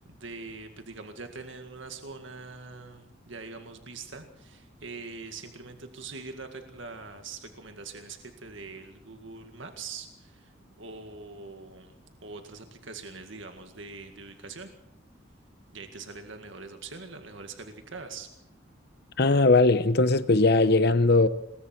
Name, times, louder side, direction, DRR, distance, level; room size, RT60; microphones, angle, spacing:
voice 1, 0.1-10.5 10.8-12.0 12.2-14.7 15.7-18.3, right 4 dB, 75° right, 2.0 m, -43 dB
voice 2, 19.2-21.3, left 3 dB, 55° left, 0.9 m, -20 dB
26.5 x 22.0 x 4.6 m
head